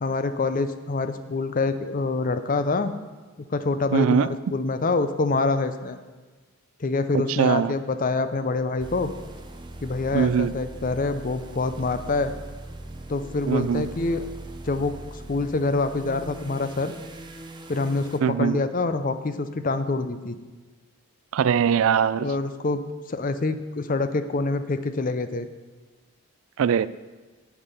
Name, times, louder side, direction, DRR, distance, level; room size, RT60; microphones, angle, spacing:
voice 1, 0.0-2.9 3.5-6.0 6.8-9.1 9.8-12.3 13.1-14.3 14.6-16.9 17.7-20.4 22.2-25.5, left 3 dB, 35° left, 0.5 m, -26 dB
voice 2, 3.9-4.3 7.4-7.7 10.1-10.5 13.5-13.8 18.2-18.5 21.3-22.3 26.6-26.9, right 7 dB, 65° right, 0.3 m, -21 dB
sound 1, 8.8-18.2, right 1 dB, 20° right, 0.6 m, -40 dB
8.8 x 8.2 x 5.4 m
head